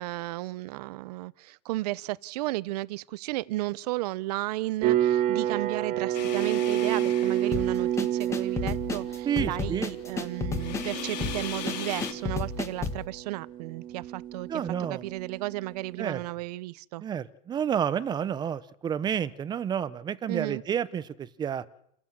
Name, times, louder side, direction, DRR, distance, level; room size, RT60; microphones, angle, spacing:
voice 1, 0.0-17.0 20.3-20.6, right 18 dB, 70° right, 0.8 m, -34 dB
sound 1, 4.8-15.9, right 12 dB, 35° right, 2.3 m, -30 dB
sound 2, 6.1-8.2 10.5-12.1, left 11 dB, 80° left, 3.1 m, -38 dB
sound 3, 7.5-13.1, left 4 dB, 15° left, 1.8 m, -32 dB
voice 2, 9.2-9.9 14.5-15.0 16.0-16.2 17.0-21.6, right 8 dB, 20° right, 0.8 m, -30 dB
29.5 x 15.0 x 7.4 m
supercardioid pair, 150°, 21 cm